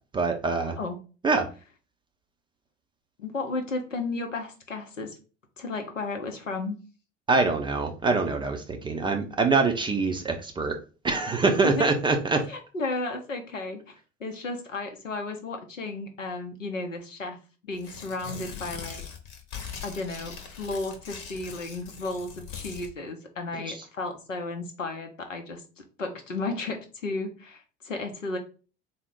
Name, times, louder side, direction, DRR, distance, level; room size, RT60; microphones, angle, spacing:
voice 1, 0.1-0.8 1.2-1.4 7.3-10.8 11.0-12.4, right 3 dB, 15° right, 4 dB, 0.4 m, -24 dB
voice 2, 0.6-1.0 3.2-5.1 5.6-6.8 11.6-11.9 12.5-17.4 17.6-19.0 19.8-28.4, left 3 dB, 85° left, 5 dB, 0.7 m, -34 dB
Tearing, 17.7-22.9, left 6 dB, 55° left, 0.9 m, -41 dB
3.9 x 2.0 x 3.7 m, 0.35 s
figure-of-eight pair, 65°, 37 cm